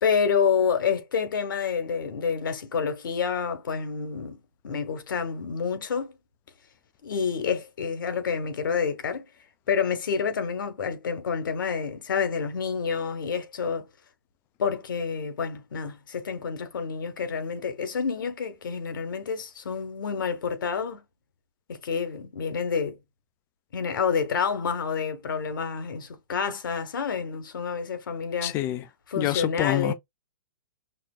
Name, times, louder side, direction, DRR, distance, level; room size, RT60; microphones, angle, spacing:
voice 1, 0.0-4.4 4.6-6.1 7.0-9.2 9.7-13.9 14.6-21.0 21.7-23.0 23.7-28.6 29.1-29.9, left 6 dB, 75° left, 1.1 m, -28 dB
voice 2, 28.4-28.8 29.2-29.9, left 14 dB, 20° left, 0.3 m, -26 dB
5.8 x 2.0 x 2.2 m
hypercardioid pair, 145°, 11 cm